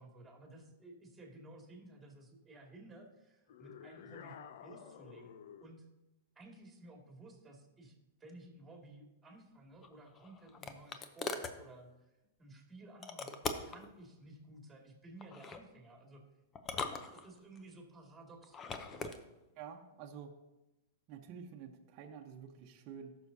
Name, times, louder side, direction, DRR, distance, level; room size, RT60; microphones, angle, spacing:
voice 1, 0.0-5.3 5.6-5.9 6.4-12.1 12.4-16.3 17.1-18.6, right 2 dB, 15° right, 0 dB, 2.3 m, -55 dB
sound 1, 3.5-5.8, left 8 dB, 65° left, 0.5 m, -52 dB
sound 2, 9.8-11.6 13.0-13.8 15.2-15.6 16.5-17.6 18.4-19.2, left 4 dB, 25° left, 0.7 m, -41 dB
voice 2, 19.6-20.3 21.1-23.2, right 7 dB, 45° right, 2 dB, 1.0 m, -49 dB
14.5 x 6.3 x 2.8 m, 0.97 s
hypercardioid pair, 120°, 0 cm